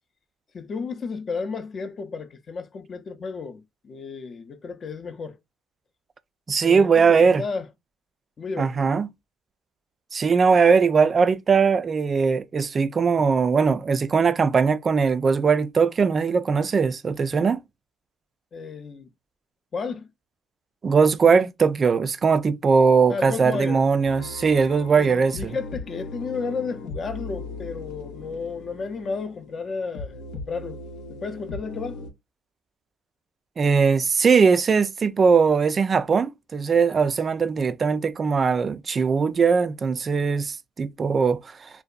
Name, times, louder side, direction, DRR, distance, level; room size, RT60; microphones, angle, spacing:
voice 1, 0.5-5.4 6.6-7.7 8.4-8.9 18.5-19.1 19.7-20.1 23.1-23.9 25.0-30.8 31.1-32.0, left 4 dB, 40° left, 0.4 m, -33 dB
voice 2, 6.5-7.4 8.6-9.1 10.1-17.6 20.8-25.6 33.6-41.7, right 5 dB, 35° right, 0.3 m, -20 dB
sound 1, 24.0-32.1, left 3 dB, 90° left, 0.7 m, -38 dB
2.6 x 2.1 x 2.3 m
cardioid pair, 100°, 0 cm